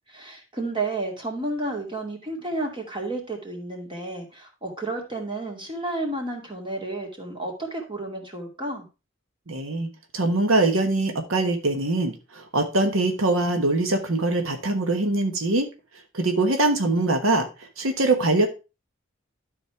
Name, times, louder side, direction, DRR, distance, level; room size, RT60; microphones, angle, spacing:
voice 1, 0.1-8.9, right 2 dB, 25° right, 1 dB, 2.4 m, -31 dB
voice 2, 9.5-15.7 16.1-18.5, right 2 dB, 90° right, 5 dB, 1.3 m, -23 dB
12.5 x 4.3 x 4.5 m, 0.29 s
head